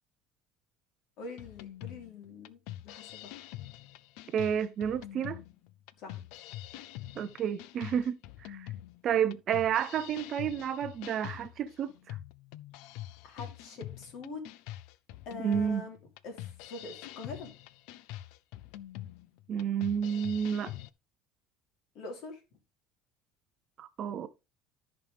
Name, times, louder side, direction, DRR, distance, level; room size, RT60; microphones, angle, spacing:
voice 1, 1.2-3.4 6.0-6.2 13.2-14.4 15.3-16.0 16.2-17.5 22.0-22.4, left 3 dB, 50° left, 3.5 m, -44 dB
sound 1, 1.4-20.9, left 14 dB, 70° left, 0.5 m, -45 dB
voice 2, 4.3-5.4 7.2-8.7 9.0-12.2 15.4-15.9 19.5-20.7 23.8-24.3, right 8 dB, 35° right, 0.6 m, -31 dB
13.5 x 5.2 x 3.4 m
cardioid pair, 165°, 0 cm